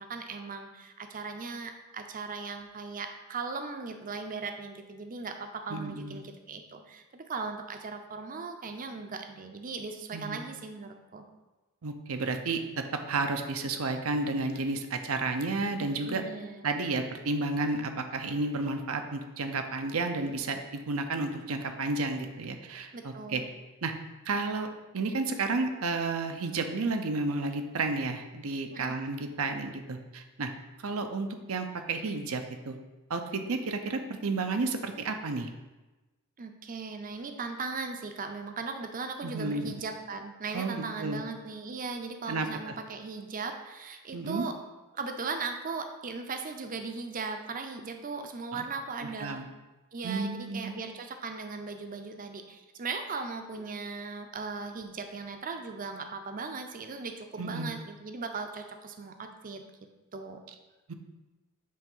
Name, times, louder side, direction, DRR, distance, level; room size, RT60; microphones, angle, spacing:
voice 1, 0.0-11.2 16.0-16.7 22.9-23.5 28.7-29.0 36.4-44.5 44.9-49.5 49.9-59.6 60.1-60.4, right 4 dB, 40° right, 6 dB, 0.6 m, -38 dB
voice 2, 5.7-6.2 10.1-10.4 11.8-16.2 16.6-23.4 23.8-23.9 24.3-24.7 24.9-30.5 30.8-32.8 33.1-35.5 39.2-39.7 40.5-41.2 42.3-42.7 44.1-44.5 48.5-48.6 49.0-49.5 50.0-50.8 57.4-57.7 60.9-61.0, right 3 dB, 80° right, 6 dB, 0.7 m, -32 dB
7.6 x 3.3 x 5.4 m, 1.1 s
head